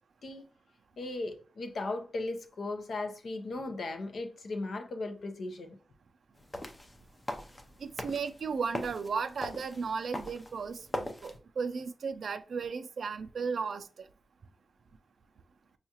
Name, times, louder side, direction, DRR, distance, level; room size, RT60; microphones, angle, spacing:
voice 1, 1.0-5.8, left 2 dB, 65° left, 0.6 m, -37 dB
sound 1, 6.4-11.4, left 1 dB, 20° left, 0.5 m, -41 dB
voice 2, 7.8-13.9, right 5 dB, 70° right, 0.4 m, -35 dB
5.6 x 2.4 x 2.8 m
wide cardioid pair, 160°, 0 cm